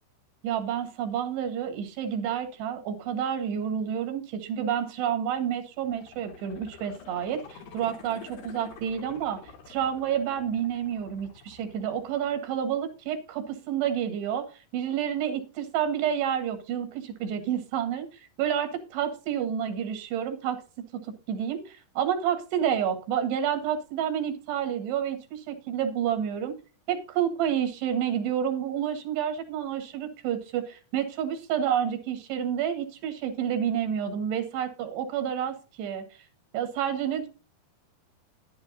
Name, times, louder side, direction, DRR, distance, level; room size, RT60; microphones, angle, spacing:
voice 1, 0.4-9.4 9.7-18.1 18.4-21.0 21.3-26.6 26.9-36.2 36.5-37.3, right 9 dB, 85° right, 7 dB, 3.9 m, -29 dB
sound 1, 5.8-12.7 13.1-13.2, left 5 dB, 80° left, 4.3 m, -48 dB
12.0 x 11.0 x 2.7 m, 0.33 s
omnidirectional pair, 4.7 m